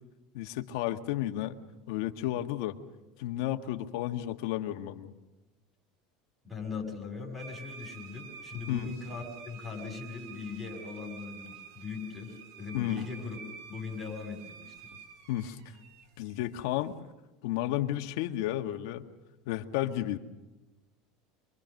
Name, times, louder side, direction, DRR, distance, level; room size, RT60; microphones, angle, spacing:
voice 1, 0.3-1.5 1.9-2.8 3.2-5.1 8.7-9.0 12.7-13.1 15.3-15.6 16.2-17.0 17.4-19.0 19.5-20.2, left 13 dB, 70° left, 6 dB, 1.7 m, -32 dB
voice 2, 6.4-13.4 13.7-14.9, left 5 dB, ahead, -3 dB, 6.2 m, -40 dB
sound 1, 7.4-17.0, right 6 dB, 75° right, 3.2 m, -49 dB
27.0 x 23.5 x 6.6 m, 1.0 s
cardioid pair, 165°, 2 cm